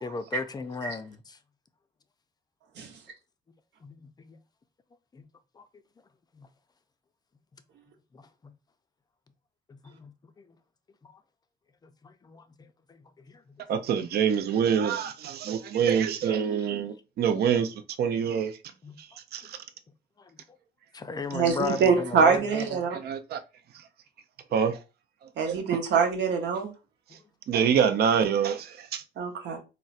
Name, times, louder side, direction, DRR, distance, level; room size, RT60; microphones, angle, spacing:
voice 1, 0.0-1.2 3.8-3.9 4.3-4.4 5.1-5.2 5.6-5.7 6.4-6.5 10.0-10.1 12.3-12.4 18.8-19.0 20.9-22.6, left 4 dB, 20° left, 0.4 m, -34 dB
voice 2, 13.7-18.6 19.0-19.6 22.9-23.4 23.7-23.8 24.5-24.8 25.2-25.8 27.5-29.0, right 7 dB, 60° right, 0.4 m, -26 dB
voice 3, 21.3-23.0 25.4-26.7 29.2-29.6, right 5 dB, 75° right, 0.8 m, -24 dB
3.9 x 2.1 x 2.4 m
cardioid pair, 115°, 18 cm